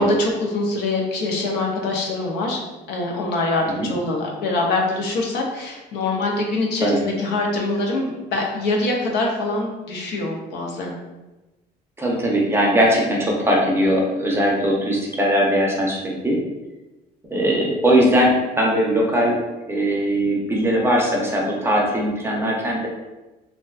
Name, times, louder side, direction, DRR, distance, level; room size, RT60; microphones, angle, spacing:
voice 1, 0.0-2.6 2.9-11.0, left 2 dB, 80° left, 0 dB, 0.6 m, -24 dB
voice 2, 12.0-16.4 17.3-19.4 19.7-22.9, equal, 15° right, -2 dB, 0.5 m, -20 dB
2.6 x 2.2 x 2.3 m, 1.1 s
cardioid pair, 110°, 17 cm